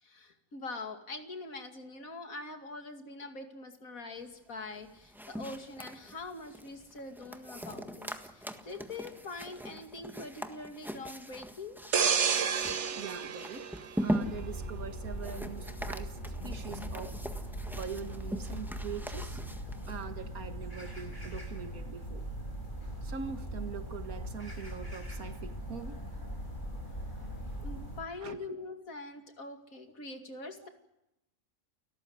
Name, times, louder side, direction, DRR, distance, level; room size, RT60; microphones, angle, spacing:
voice 1, 0.0-11.8 16.4-17.0 27.6-30.7, left 3 dB, 75° left, 6 dB, 2.9 m, -44 dB
sound 1, 4.7-20.1, equal, ahead, 1.5 m, -41 dB
sound 2, 11.9-14.6 15.1-15.3, right 7 dB, 55° right, 1.4 m, -30 dB
voice 2, 12.9-13.7 14.0-16.2 16.4-17.2 17.7-19.4 19.9-22.3 23.0-26.0 28.2-28.4 30.6-30.7, right 6 dB, 90° right, 8 dB, 2.2 m, -43 dB
sound 3, 14.2-28.0, equal, 35° left, 5.6 m, -40 dB
30.0 x 14.0 x 9.6 m, 0.88 s
omnidirectional pair, 1.5 m